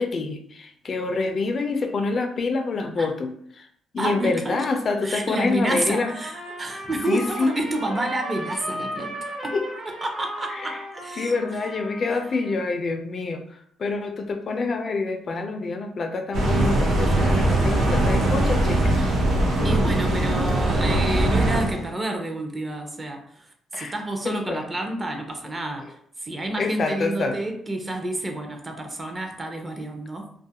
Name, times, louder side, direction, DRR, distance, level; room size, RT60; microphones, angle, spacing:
voice 1, 0.0-3.7 3.9-6.1 6.9-7.6 9.5-9.7 10.5-10.8 11.2-19.0 19.8-20.0 23.7-23.9 24.2-24.7 26.6-27.4, left 3 dB, 45° left, 6 dB, 0.3 m, -27 dB
voice 2, 4.0-4.6 5.0-9.6 10.0-11.3 19.6-23.5 23.7-30.3, right 1 dB, 25° right, 4 dB, 0.5 m, -29 dB
Trumpet, 5.8-12.5, right 1 dB, 50° right, 1.1 m, -36 dB
sound 1, 16.3-21.9, right 1 dB, 80° right, 0.6 m, -21 dB
2.3 x 2.0 x 2.8 m, 0.64 s
cardioid pair, 90°, 0 cm